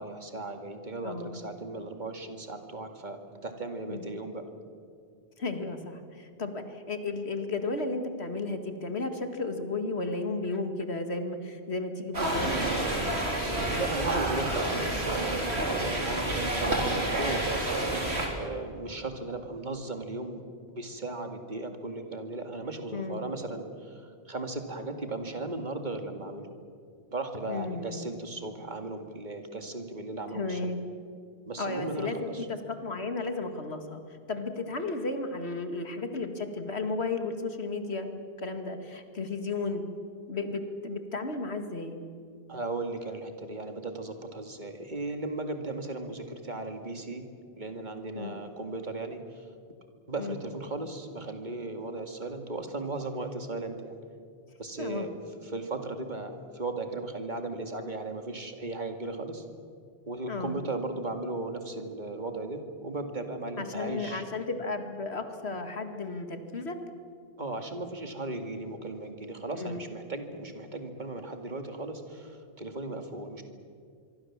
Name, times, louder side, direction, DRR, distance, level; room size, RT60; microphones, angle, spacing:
voice 1, 0.0-4.5 13.8-26.5 27.1-30.6 31.5-32.5 42.5-47.3 47.5-49.5 50.1-54.0 54.6-55.2 55.4-59.4 60.1-64.2 67.4-73.4, right 2 dB, 45° right, 6 dB, 2.3 m, -36 dB
voice 2, 1.0-1.4 3.9-4.1 5.4-12.7 22.9-23.2 27.5-28.1 30.3-30.8 31.6-34.0 34.3-39.8 40.3-42.0 48.1-48.4 50.2-50.4 54.8-55.1 60.3-60.5 63.6-66.8 69.5-69.8, left 3 dB, 80° left, 7 dB, 2.3 m, -34 dB
sound 1, 12.1-18.3, right 1 dB, 80° right, 4.0 m, -29 dB
25.0 x 23.5 x 7.4 m, 2.3 s
omnidirectional pair, 1.1 m